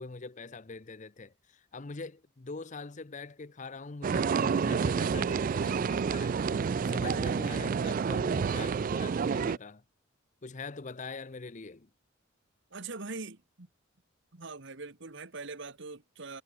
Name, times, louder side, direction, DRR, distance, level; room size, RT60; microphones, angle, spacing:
voice 1, 0.0-9.8 10.4-11.9, left 3 dB, 35° left, 0.7 m, -43 dB
sound 1, 4.0-9.6, right 6 dB, 40° right, 0.3 m, -29 dB
sound 2, 4.7-8.8, equal, 55° left, 4.1 m, -52 dB
voice 2, 12.7-13.7 14.3-16.4, right 3 dB, 60° right, 1.5 m, -42 dB
head